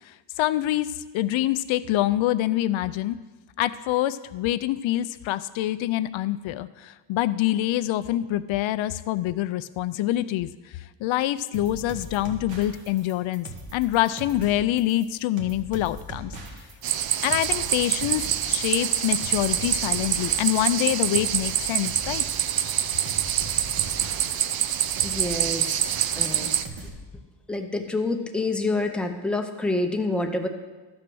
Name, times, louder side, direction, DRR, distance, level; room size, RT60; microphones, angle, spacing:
voice 1, 0.4-3.2 3.6-10.5 11.0-16.3 17.2-22.2, left 14 dB, 80° left, 14 dB, 0.5 m, -25 dB
sound 1, 11.5-26.9, right 2 dB, 65° right, 1.8 m, -40 dB
sound 2, 16.8-26.7, right 10 dB, 50° right, 0.5 m, -26 dB
voice 2, 25.0-26.5 27.5-30.5, left 2 dB, ahead, 4 dB, 0.7 m, -27 dB
12.5 x 6.1 x 6.1 m, 1.3 s
cardioid pair, 145°, 47 cm